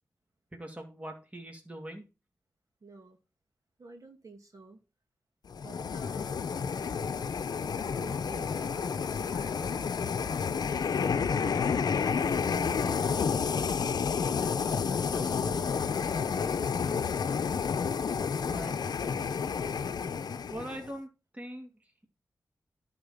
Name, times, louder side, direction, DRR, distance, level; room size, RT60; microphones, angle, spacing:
voice 1, 0.5-2.0 12.6-12.9 18.5-18.7 20.5-21.7, right 1 dB, 20° right, 2.5 m, -42 dB
voice 2, 2.8-3.2 3.8-4.8 5.6-6.6 7.6-9.8 11.4-11.7 12.1-15.7, right 3 dB, 55° right, 2.6 m, -50 dB
sound 1, 5.5-20.9, left 6 dB, 75° left, 0.7 m, -30 dB
11.0 x 4.3 x 5.7 m
cardioid pair, 45°, 7 cm